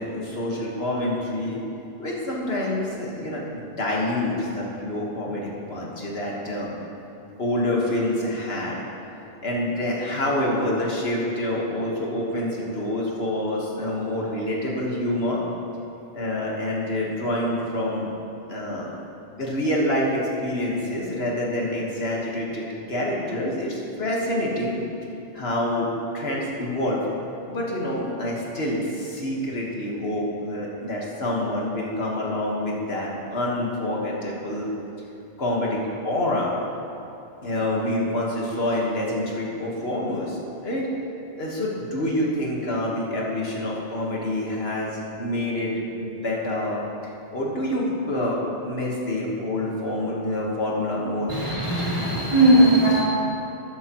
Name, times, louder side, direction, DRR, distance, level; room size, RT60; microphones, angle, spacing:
voice 1, 0.0-1.6 2.0-3.4 3.8-6.7 7.4-8.8 9.4-15.4 16.1-18.1 18.5-18.9 19.4-24.8 25.3-25.9 26.1-27.0 27.5-34.7 35.4-35.8 36.0-36.5 37.4-40.9 41.4-46.8 47.3-48.4 48.6-51.3, left 1 dB, 70° left, -3 dB, 1.7 m, -27 dB
voice 2, 51.3-53.0, right 1 dB, 30° right, -8 dB, 2.5 m, -18 dB
13.0 x 9.4 x 3.0 m, 2.9 s
omnidirectional pair, 1.1 m